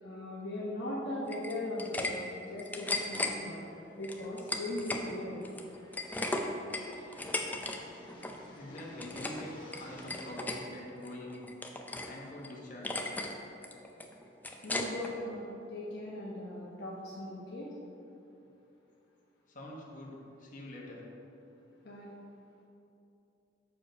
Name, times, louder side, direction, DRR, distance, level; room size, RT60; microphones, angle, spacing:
voice 1, 0.0-3.6 4.0-5.4 14.6-17.7 21.8-22.1, left 1 dB, 65° left, -5 dB, 1.0 m, -39 dB
sound 1, 1.3-2.1 2.4-3.3 4.0-5.0 5.4-7.8 8.0-8.4 8.7-9.4 9.7-10.6 11.0-12.1 12.4-12.5 12.8-13.3 13.6-15.1, left 2 dB, 10° left, 0.5 m, -36 dB
sound 2, 3.1-10.3, left 1 dB, 30° left, 1.3 m, -54 dB
voice 2, 8.5-11.4 12.1-12.9 19.5-21.0, left 1 dB, 45° left, -3 dB, 1.3 m, -45 dB
6.5 x 5.0 x 5.2 m, 2.8 s
head